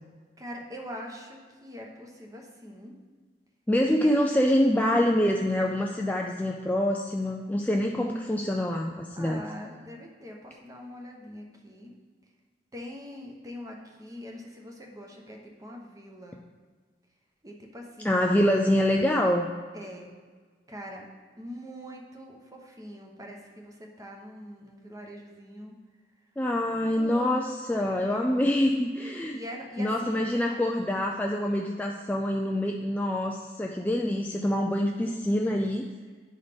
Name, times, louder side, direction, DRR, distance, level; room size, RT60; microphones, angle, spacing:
voice 1, 0.4-2.9 4.0-4.1 9.2-11.9 12.7-16.4 17.4-18.2 19.7-20.1 20.7-21.1 21.4-25.7 26.7-27.5 27.7-28.5 29.3-30.2, equal, 20° right, 1 dB, 0.9 m, -43 dB
voice 2, 3.7-9.4 18.0-19.5 26.4-29.4 29.8-35.9, left 1 dB, 10° left, 1 dB, 0.3 m, -25 dB
9.9 x 4.0 x 5.1 m, 1.5 s
head